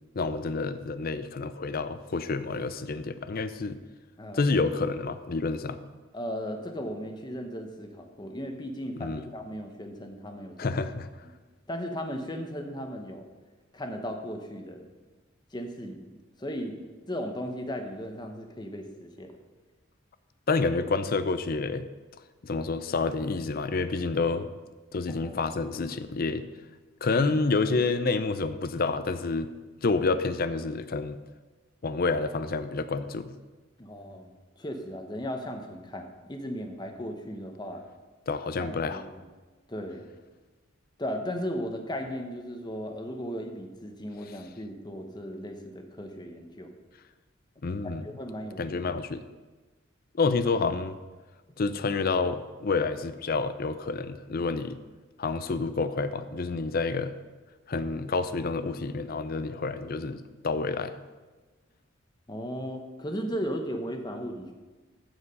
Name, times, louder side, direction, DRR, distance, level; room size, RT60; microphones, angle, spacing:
voice 1, 0.1-3.8 4.3-5.8 9.0-9.3 10.6-11.1 20.5-21.9 22.4-24.5 24.9-26.4 27.0-29.5 29.8-31.2 31.8-33.3 38.3-39.0 47.6-48.1 48.6-49.2 50.1-51.0 51.6-54.8 55.2-57.1 57.7-60.9, left 3 dB, 45° left, 12 dB, 0.5 m, -28 dB
voice 2, 6.1-10.8 11.7-13.3 13.7-14.9 15.5-16.8 17.1-19.3 25.1-25.4 33.8-34.3 34.6-37.8 38.9-39.2 39.7-40.1 41.0-46.7 48.0-48.8 62.3-64.5, equal, 20° left, 4 dB, 1.0 m, -36 dB
14.5 x 4.9 x 5.4 m, 1.3 s
head